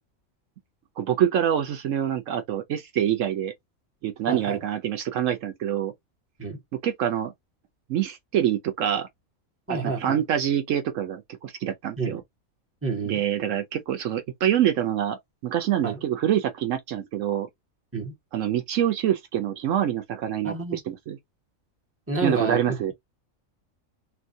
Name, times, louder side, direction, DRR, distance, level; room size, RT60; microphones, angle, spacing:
voice 1, 1.0-3.5 4.0-5.9 6.8-7.3 7.9-9.1 9.7-12.2 13.0-17.5 18.3-21.2 22.2-22.9, right 10 dB, 70° right, 1.0 m, -26 dB
voice 2, 4.3-4.6 6.4-6.6 9.7-10.2 12.0-12.2 12.8-13.2 15.8-16.0 17.9-18.1 20.4-20.8 22.1-22.6, right 3 dB, 10° right, 1.1 m, -29 dB
4.4 x 2.2 x 2.6 m
omnidirectional pair, 1.4 m